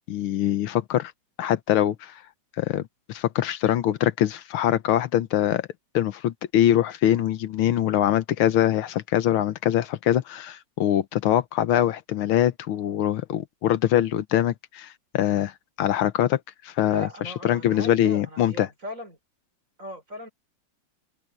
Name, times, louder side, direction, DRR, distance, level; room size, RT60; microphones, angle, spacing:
voice 1, 0.1-1.1 1.4-2.1 2.6-2.8 3.1-5.7 5.9-14.9 15.1-15.5 15.8-16.4 16.6-17.1 17.4-18.7, left 11 dB, 75° left, 1.7 m, -23 dB
voice 2, 16.9-19.2 19.8-20.3, left 1 dB, 35° right, 5.4 m, -38 dB
open air
omnidirectional pair, 2.4 m